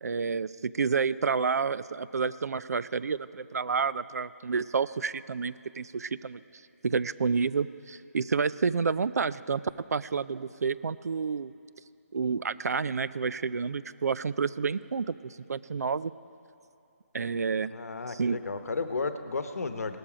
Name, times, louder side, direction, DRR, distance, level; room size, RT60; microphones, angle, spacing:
voice 1, 0.0-6.4 6.8-9.6 9.9-11.5 12.1-16.1 17.1-17.7 18.1-18.4, right 5 dB, 85° right, 17 dB, 0.4 m, -29 dB
voice 2, 17.7-20.0, left 4 dB, 70° left, 9 dB, 1.0 m, -33 dB
18.0 x 13.0 x 5.0 m, 2.8 s
hypercardioid pair, 175°, 8 cm